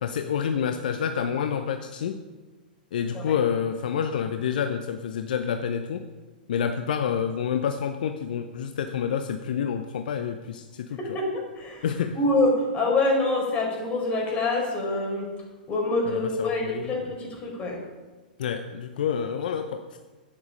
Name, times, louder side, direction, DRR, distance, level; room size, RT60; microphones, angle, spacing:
voice 1, 0.0-2.2 2.9-6.0 6.5-11.0 11.8-12.2 16.1-16.9 18.4-20.0, left 7 dB, 65° left, 8 dB, 0.7 m, -28 dB
voice 2, 11.0-11.9 12.1-15.3 15.7-17.8, left 2 dB, 25° left, -1 dB, 4.6 m, -26 dB
11.0 x 9.7 x 5.1 m, 1.3 s
figure-of-eight pair, 105°, 5 cm